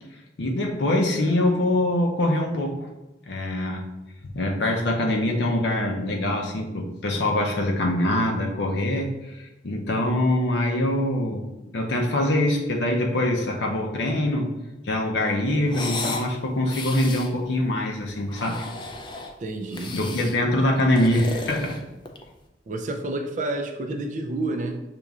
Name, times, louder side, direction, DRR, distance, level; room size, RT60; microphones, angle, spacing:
voice 1, 0.4-2.9 3.3-3.9 4.3-14.5 14.8-18.6 19.9-21.8, left 1 dB, 70° left, 1 dB, 0.6 m, -24 dB
sound 1, 15.7-16.3 16.6-17.3 18.2-19.3 19.7-20.4 20.8-22.3, left 3 dB, 25° left, 0.4 m, -34 dB
voice 2, 19.4-20.0 22.7-24.8, right 2 dB, 45° right, 5 dB, 0.4 m, -29 dB
6.6 x 3.0 x 2.4 m, 1.0 s
head